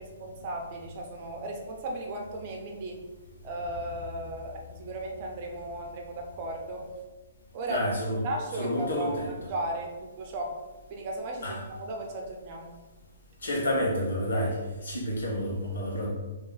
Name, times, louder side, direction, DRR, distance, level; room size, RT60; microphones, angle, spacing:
voice 1, 0.0-3.0 3.4-6.9 7.5-7.8 8.2-10.5 10.9-12.7, right 1 dB, 30° right, 1 dB, 0.6 m, -36 dB
voice 2, 7.7-8.2 8.5-9.3 11.4-11.6 13.4-16.1, equal, 80° left, -3 dB, 1.3 m, -29 dB
2.9 x 2.7 x 3.9 m, 1.2 s
hypercardioid pair, 170°, 0 cm